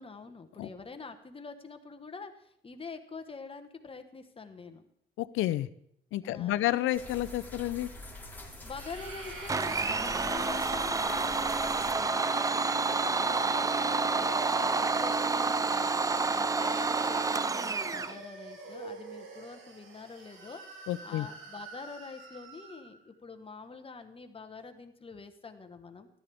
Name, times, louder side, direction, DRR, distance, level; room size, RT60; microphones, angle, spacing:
voice 1, 0.0-4.8 6.2-6.7 8.6-15.9 16.3-20.6 21.0-26.1, left 4 dB, 30° left, 7 dB, 1.2 m, -46 dB
voice 2, 5.2-5.7 6.1-7.9 20.9-21.3, left 14 dB, 85° left, 15 dB, 0.5 m, -30 dB
sound 1, 6.9-11.9, left 2 dB, 10° left, 2.6 m, -46 dB
sound 2, 8.7-15.8 16.5-23.0, right 3 dB, 85° right, 2.2 m, -44 dB
Domestic sounds home sounds, 9.5-18.2, right 4 dB, 15° right, 0.4 m, -29 dB
13.5 x 11.5 x 3.5 m, 0.72 s
cardioid pair, 90°, 20 cm